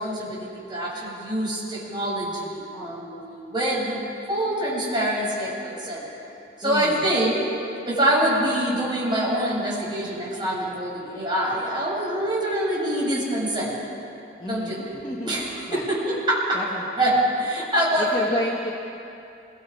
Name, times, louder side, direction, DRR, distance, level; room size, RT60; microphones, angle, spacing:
voice 1, 0.0-6.0 6.6-7.4 7.9-13.8 14.5-15.4 15.7-16.6 17.0-17.1 17.4-18.4, right 1 dB, 25° right, -6 dB, 7.3 m, -25 dB
voice 2, 6.6-7.2 14.4-15.9 16.5-16.9 18.0-18.7, left 1 dB, 25° left, -4 dB, 1.9 m, -31 dB
27.5 x 24.0 x 5.0 m, 2.7 s
head